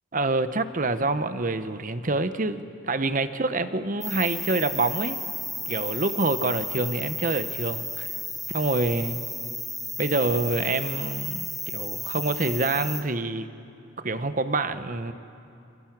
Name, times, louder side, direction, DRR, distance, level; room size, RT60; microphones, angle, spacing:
voice 1, 0.1-5.2 5.7-8.1 8.5-9.2 10.0-13.5 14.0-15.1, right 2 dB, 40° right, 11 dB, 0.9 m, -26 dB
sound 1, 4.0-13.0, left 1 dB, ahead, 2.0 m, -33 dB
29.0 x 26.5 x 6.1 m, 2.7 s
head